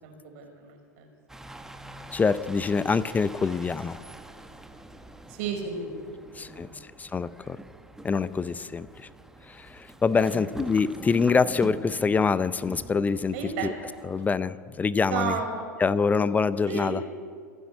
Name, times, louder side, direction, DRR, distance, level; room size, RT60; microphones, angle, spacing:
voice 1, 0.0-1.1 5.3-6.8 10.1-10.5 13.3-13.7 15.1-15.7 16.7-16.9, right 5 dB, 55° right, 3 dB, 5.7 m, -33 dB
sound 1, 1.3-14.3, right 2 dB, 5° right, 1.4 m, -45 dB
voice 2, 2.1-4.0 6.4-6.7 7.0-7.6 8.0-8.9 10.0-13.3 13.6-13.7 14.1-15.3 15.8-17.0, left 5 dB, 15° left, 17 dB, 0.6 m, -25 dB
27.0 x 10.0 x 9.6 m, 2.1 s
hypercardioid pair, 90°, 10 cm